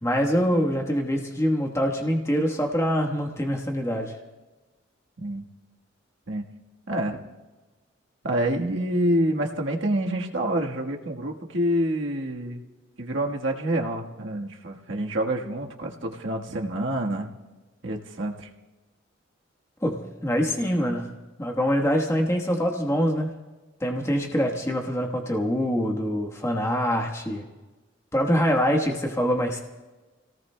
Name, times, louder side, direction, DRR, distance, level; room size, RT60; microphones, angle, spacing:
voice 1, 0.0-4.2 19.8-21.1 21.4-23.3 23.8-27.4 28.1-29.6, equal, 15° left, 1 dB, 1.2 m, -24 dB
voice 2, 6.9-7.2 8.2-12.6 13.0-17.3 17.8-18.5, right 1 dB, 70° right, 1 dB, 1.4 m, -27 dB
29.5 x 18.0 x 2.2 m, 1.2 s
head